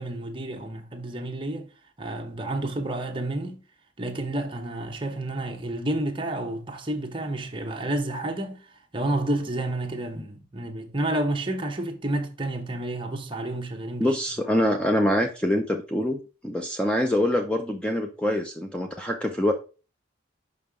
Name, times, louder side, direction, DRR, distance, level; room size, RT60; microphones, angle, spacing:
voice 1, 0.0-1.7 2.0-3.6 4.0-14.1, right 1 dB, 25° right, 1.0 m, -30 dB
voice 2, 14.0-19.5, left 1 dB, 5° left, 0.5 m, -25 dB
5.6 x 5.6 x 3.6 m
head